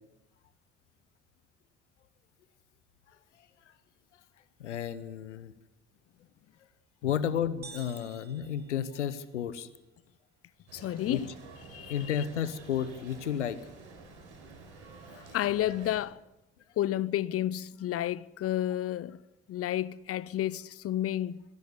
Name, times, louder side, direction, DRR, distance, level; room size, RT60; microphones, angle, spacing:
voice 1, 4.6-5.5 7.0-9.7 11.0-11.2 11.9-13.6 15.1-15.3, left 9 dB, 80° left, 0.9 m, -32 dB
sound 1, 7.6-9.6, right 5 dB, 30° right, 1.7 m, -51 dB
voice 2, 10.7-11.3 11.7-12.0 15.3-16.2 16.8-19.2 19.5-21.4, left 12 dB, 40° left, 0.7 m, -31 dB
sound 2, 10.7-16.0, right 3 dB, 75° right, 4.7 m, -50 dB
20.0 x 16.5 x 8.2 m
figure-of-eight pair, 45°, 35 cm